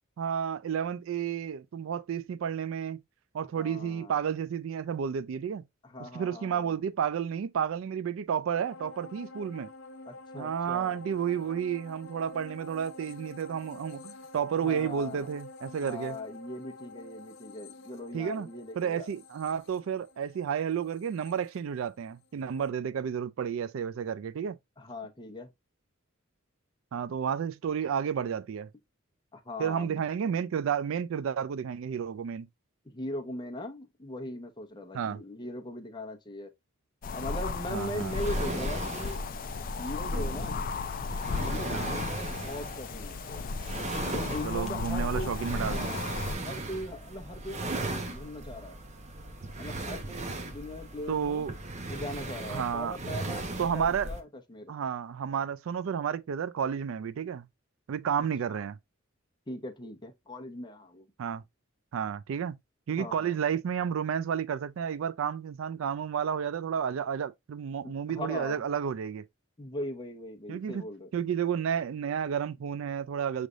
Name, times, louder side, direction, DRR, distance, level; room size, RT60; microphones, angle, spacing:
voice 1, 0.2-3.0 3.3-5.6 6.0-9.7 10.3-16.2 18.1-18.5 18.8-24.6 26.9-28.7 29.6-32.5 34.9-35.2 37.7-38.1 41.7-41.9 44.4-45.9 51.1-51.5 52.5-53.0 53.6-54.1 54.7-57.5 57.9-58.8 61.2-61.4 61.9-62.6 62.9-69.3 70.5-70.8 71.1-73.5, right 7 dB, 70° right, 0.3 m, -31 dB
voice 2, 3.5-4.2 5.8-6.8 10.1-11.0 14.6-15.3 15.8-19.1 24.8-25.5 29.3-30.0 32.8-36.5 37.1-39.2 39.8-40.6 41.4-43.4 44.0-45.3 45.6-46.1 46.4-48.8 49.6-51.5 51.9-54.7 58.5-58.6 59.5-61.1 63.0-63.4 67.8-68.6 69.6-71.1, left 1 dB, 20° left, 0.8 m, -40 dB
sound 1, 8.6-22.2 22.6-22.7, left 3 dB, 60° left, 0.7 m, -48 dB
sound 2, 37.0-46.4, left 4 dB, 40° left, 0.3 m, -35 dB
sound 3, 37.2-54.2, right 2 dB, 35° right, 0.8 m, -38 dB
6.3 x 3.3 x 2.4 m
head